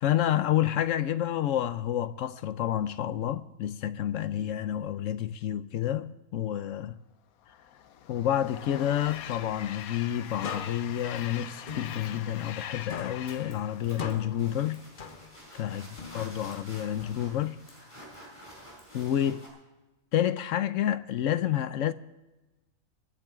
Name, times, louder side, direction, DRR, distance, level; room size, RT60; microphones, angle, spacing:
voice 1, 0.0-7.0 8.1-14.8 15.5-17.6 18.9-19.5 20.1-21.9, left 11 dB, 70° left, 1.0 m, -29 dB
Train, 7.4-14.9, left 9 dB, 90° left, 1.2 m, -43 dB
sound 1, 10.4-12.6 12.9-15.6 16.0-17.6, left 6 dB, 45° left, 0.9 m, -42 dB
sound 2, 13.2-19.5, equal, 20° left, 4.8 m, -50 dB
24.0 x 10.5 x 3.6 m
omnidirectional pair, 1.5 m